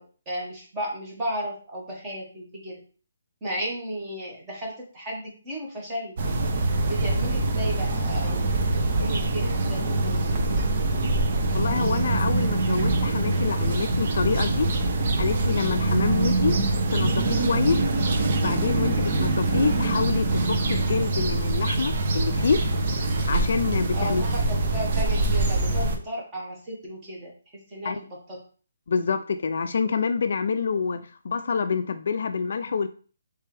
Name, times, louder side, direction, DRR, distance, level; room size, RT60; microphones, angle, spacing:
voice 1, 0.0-2.8 3.4-6.2 6.9-10.9 16.0-16.3 23.9-28.4, equal, 20° right, -3 dB, 1.5 m, -34 dB
sound 1, 6.2-26.0, right 2 dB, 40° right, 0.6 m, -24 dB
voice 2, 11.5-14.7 15.2-16.6 16.9-17.8 18.3-22.6 23.3-24.2 27.8-28.0 28.9-32.9, left 5 dB, 55° left, 9 dB, 0.4 m, -27 dB
4.4 x 3.4 x 3.3 m, 0.40 s
hypercardioid pair, 165°, 0 cm